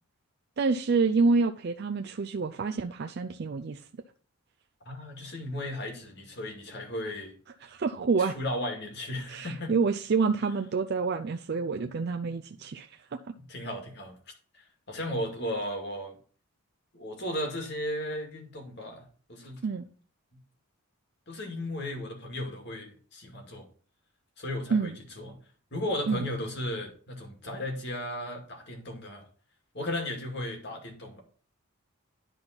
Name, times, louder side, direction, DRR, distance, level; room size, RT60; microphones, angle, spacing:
voice 1, 0.6-3.8 7.6-8.4 9.3-13.0 13.3-13.4 19.6-19.8 24.7-25.0 26.1-26.2, right 4 dB, 50° right, 0.4 m, -27 dB
voice 2, 4.9-7.4 8.2-9.7 13.5-14.2 14.5-16.2 16.9-19.0 19.3-19.6 21.3-23.7 24.4-25.4 25.7-29.2 29.7-31.2, left 1 dB, 50° left, 2.2 m, -35 dB
10.5 x 4.0 x 5.8 m
head